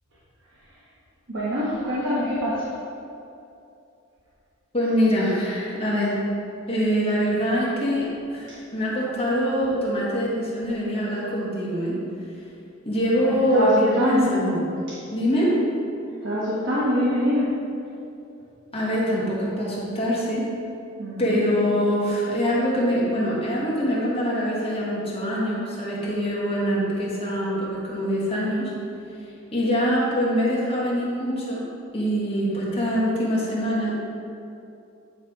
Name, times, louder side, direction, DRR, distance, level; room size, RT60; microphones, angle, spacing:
voice 1, 1.3-2.7 13.2-14.3 16.2-17.5 21.0-21.4, equal, 65° right, -8 dB, 1.2 m, -24 dB
voice 2, 4.7-6.2 6.7-12.0 12.8-14.6 15.1-15.6 18.7-20.5 21.2-28.7 29.5-31.6 31.9-34.0, equal, 30° left, -6 dB, 1.6 m, -24 dB
9.5 x 3.4 x 4.6 m, 2.7 s
head